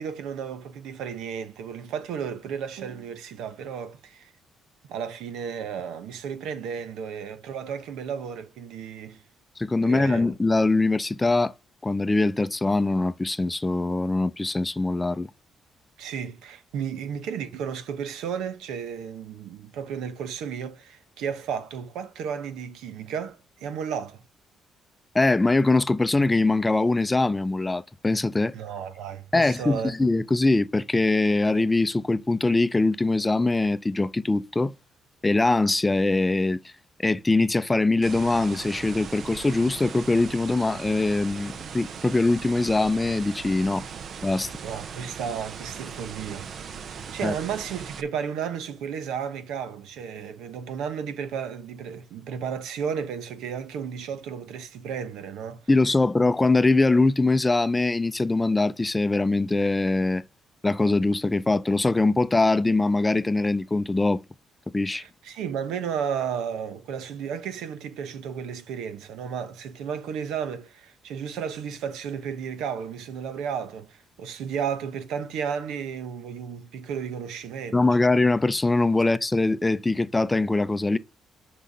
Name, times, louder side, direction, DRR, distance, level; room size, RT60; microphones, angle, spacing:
voice 1, 0.0-4.3 4.9-9.2 9.8-10.2 16.0-24.2 28.5-29.9 44.6-46.8 47.1-55.6 64.9-78.1, right 7 dB, 90° right, 1.0 m, -33 dB
voice 2, 9.6-11.5 11.8-15.3 25.1-28.5 29.3-34.7 35.2-36.6 37.0-43.8 44.2-44.5 47.2-47.3 55.7-60.2 60.6-64.2 64.7-65.0 77.7-81.0, left 2 dB, 15° left, 0.5 m, -22 dB
sound 1, 38.0-48.0, right 6 dB, 60° right, 0.8 m, -39 dB
6.2 x 5.5 x 5.5 m
cardioid pair, 90°, 0 cm